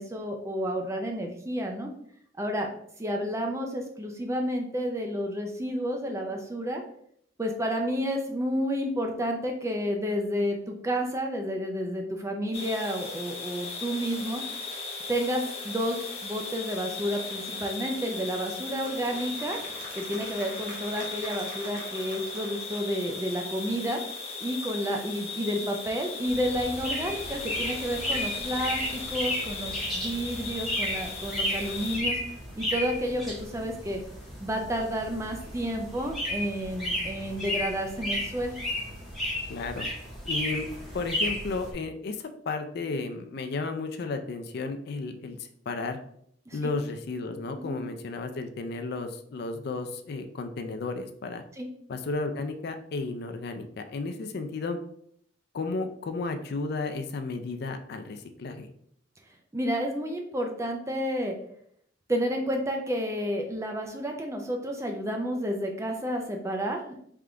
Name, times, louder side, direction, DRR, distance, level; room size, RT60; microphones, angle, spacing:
voice 1, 0.0-1.9 2.4-2.7 3.0-6.8 7.4-14.4 15.1-19.6 19.9-24.0 24.4-32.2 32.6-34.0 34.4-38.6 46.5-46.7 47.7-47.8 51.6-51.7 59.5-61.3 62.1-67.0, equal, 15° right, 3 dB, 0.4 m, -30 dB
sound 1, 12.5-32.0, left 4 dB, 35° left, 0.9 m, -37 dB
Applause / Crowd, 17.9-23.3, right 1 dB, 45° right, 1.2 m, -45 dB
sound 2, 26.3-41.7, left 1 dB, ahead, 1.4 m, -33 dB
voice 2, 39.5-39.9 40.2-40.7 40.9-46.0 46.5-51.4 51.9-54.8 55.5-58.7, left 3 dB, 60° left, 7 dB, 0.4 m, -33 dB
3.7 x 3.6 x 3.3 m, 0.67 s
head